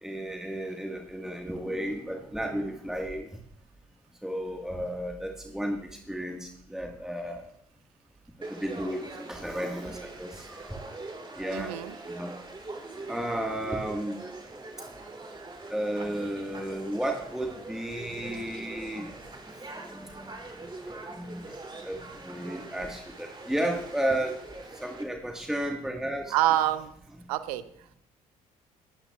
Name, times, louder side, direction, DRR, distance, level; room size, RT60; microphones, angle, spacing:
voice 1, 0.0-3.4 4.2-7.5 8.4-10.7 11.4-11.7 12.0-12.3 12.9-14.2 15.7-19.1 19.8-24.4 24.8-26.3, right 1 dB, 5° right, 1 dB, 1.6 m, -33 dB
Conversation / Crowd, 8.4-25.0, right 2 dB, 25° right, 2.9 m, -43 dB
voice 2, 11.5-12.0 26.3-26.9 27.3-27.6, right 13 dB, 80° right, 13 dB, 0.7 m, -26 dB
20.0 x 9.7 x 2.4 m, 0.69 s
hypercardioid pair, 50°, 19 cm